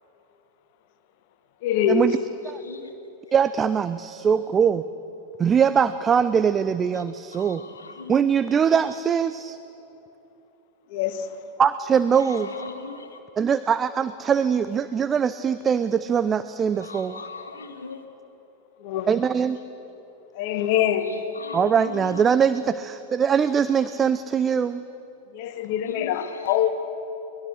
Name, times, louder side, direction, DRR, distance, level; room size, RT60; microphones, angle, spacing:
voice 1, 1.6-2.1 10.9-11.3 18.8-19.1 20.3-21.1 25.3-26.7, left 10 dB, 50° left, 1.4 m, -24 dB
voice 2, 3.3-4.8 5.4-7.6 8.1-9.6 11.6-12.5 13.4-17.2 19.1-19.6 21.5-24.8, right 7 dB, 20° right, 0.5 m, -22 dB
voice 3, 7.3-8.2 12.2-13.2 16.8-18.0 21.4-22.1 25.9-26.6, left 4 dB, 75° left, 1.9 m, -39 dB
22.0 x 20.0 x 6.5 m
figure-of-eight pair, 90°, 0 cm